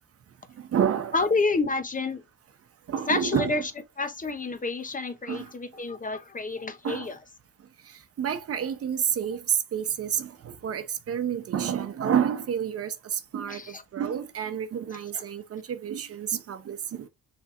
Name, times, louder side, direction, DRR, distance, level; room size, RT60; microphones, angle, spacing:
voice 1, 0.6-1.2 2.9-3.6 5.3-5.5 6.8-7.1 7.9-17.1, right 8 dB, 50° right, 0.8 m, -29 dB
voice 2, 1.1-2.2 3.1-3.6 4.0-7.1 13.5-13.8 15.1-15.2, left 3 dB, 25° left, 0.8 m, -29 dB
5.6 x 3.4 x 2.5 m
cardioid pair, 90°, 30 cm